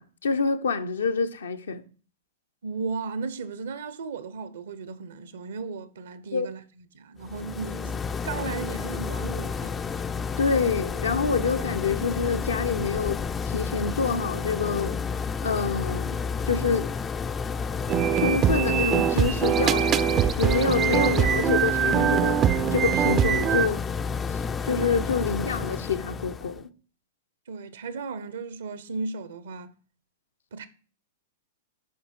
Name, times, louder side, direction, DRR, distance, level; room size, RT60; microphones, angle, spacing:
voice 1, 0.0-1.8 6.3-6.5 10.4-13.2 13.4-15.0 15.4-16.2 16.5-16.9 18.1-20.1 20.4-22.4 22.7-23.8 24.6-26.7, left 5 dB, 75° left, 0.9 m, -26 dB
voice 2, 2.6-8.0 8.2-9.7 27.5-29.7 30.5-30.7, right 4 dB, 65° right, 1.0 m, -35 dB
sound 1, 7.2-26.6, left 5 dB, 20° left, 0.5 m, -31 dB
sound 2, 17.9-23.7, right 10 dB, 30° right, 0.6 m, -23 dB
10.5 x 5.0 x 4.5 m
figure-of-eight pair, 100°, 0 cm